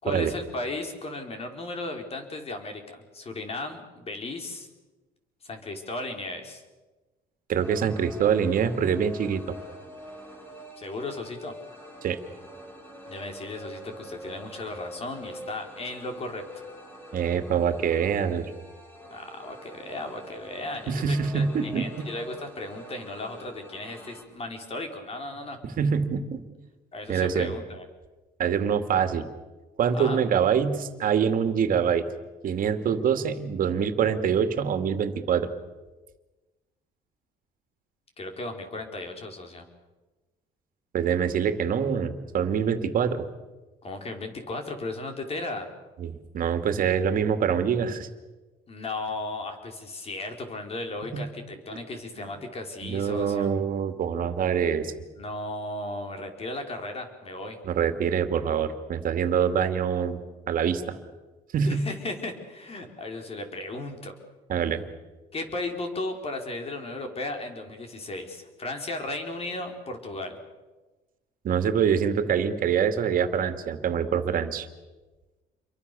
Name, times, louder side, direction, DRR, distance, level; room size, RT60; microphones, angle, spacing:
voice 1, 0.0-4.7 5.4-6.6 10.8-11.5 13.1-16.6 19.1-25.6 26.9-27.9 29.9-30.2 38.2-39.7 43.8-45.7 48.7-53.5 55.2-57.6 61.6-64.2 65.3-70.4, left 2 dB, 35° left, 4 dB, 4.9 m, -35 dB
voice 2, 7.5-9.5 12.0-12.2 17.1-18.5 20.9-22.1 25.8-26.4 27.1-27.5 28.4-29.3 29.8-32.0 32.4-35.5 40.9-43.2 46.0-48.1 51.1-51.2 52.8-54.9 57.6-60.2 60.5-61.0 61.5-61.8 64.5-64.8 71.4-74.7, right 7 dB, 55° right, 8 dB, 2.6 m, -25 dB
sound 1, 7.6-24.2, equal, 15° left, 7.9 m, -45 dB
28.5 x 23.5 x 7.1 m, 1.2 s
cardioid pair, 110°, 17 cm